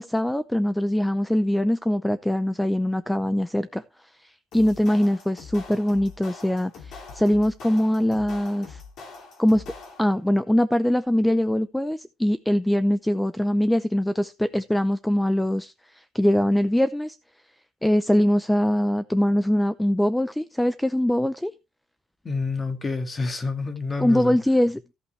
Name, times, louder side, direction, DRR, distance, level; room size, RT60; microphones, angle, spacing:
voice 1, 0.0-3.8 4.2-8.8 9.4-9.6 10.0-17.2 17.8-21.5 24.0-24.9, left 1 dB, 5° left, 0.6 m, -22 dB
sound 1, 4.5-10.2, left 4 dB, 55° left, 3.7 m, -43 dB
voice 2, 22.2-24.4, left 3 dB, 25° left, 1.9 m, -28 dB
14.0 x 8.2 x 3.2 m
cardioid pair, 130°, 0 cm